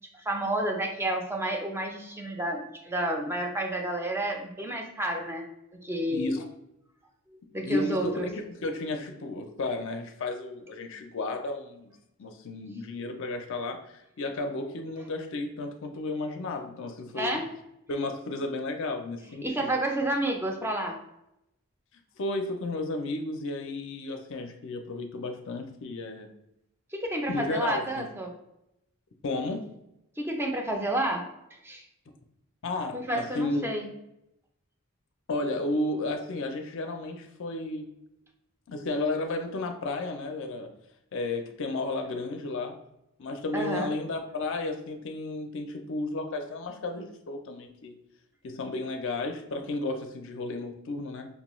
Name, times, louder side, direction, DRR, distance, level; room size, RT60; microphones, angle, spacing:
voice 1, 0.1-5.4 5.8-6.4 7.5-8.3 17.2-17.4 19.4-20.9 26.9-28.3 30.2-31.2 31.6-31.8 32.9-33.9 43.5-43.9, right 1 dB, 10° right, 2 dB, 0.5 m, -30 dB
voice 2, 6.1-6.5 7.6-11.9 12.2-17.3 17.9-19.7 22.2-26.3 27.3-28.1 29.2-29.7 32.6-33.7 35.3-37.9 38.7-40.7 41.1-42.8 43.2-47.9 48.4-51.3, left 2 dB, 55° left, 4 dB, 0.5 m, -33 dB
5.3 x 2.2 x 3.0 m, 0.85 s
head